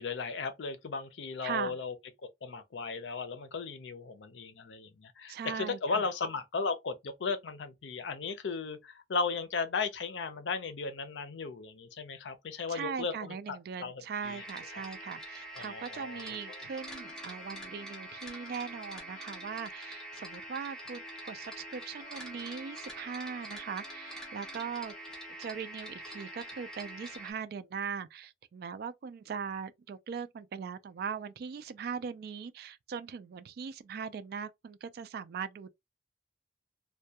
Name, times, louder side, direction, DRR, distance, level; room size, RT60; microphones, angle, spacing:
voice 1, 0.0-1.9 2.4-14.4 15.6-16.3, left 4 dB, 90° left, 0.5 m, -36 dB
voice 2, 1.4-1.8 5.3-6.0 12.7-24.9 25.4-35.7, right 6 dB, 60° right, 0.3 m, -40 dB
sound 1, 14.2-27.3, equal, 5° left, 0.6 m, -45 dB
2.2 x 2.1 x 2.7 m
head